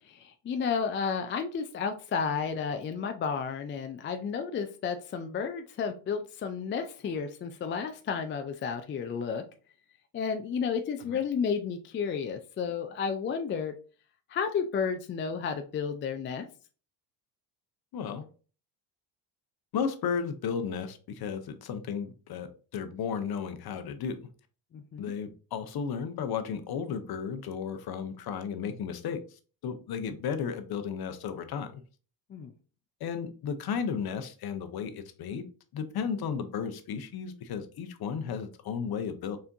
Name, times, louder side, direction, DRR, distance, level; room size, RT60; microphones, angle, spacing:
voice 1, 0.1-9.4 10.1-13.7 14.3-16.5 24.7-25.1 32.3-32.5, left 6 dB, 25° left, 6 dB, 0.3 m, -32 dB
voice 2, 17.9-18.3 19.7-24.2 25.0-29.2 29.6-31.8 33.0-35.4 35.7-39.4, left 6 dB, 50° left, 8 dB, 0.8 m, -34 dB
4.3 x 3.4 x 2.6 m, 0.38 s
cardioid pair, 95°, 48 cm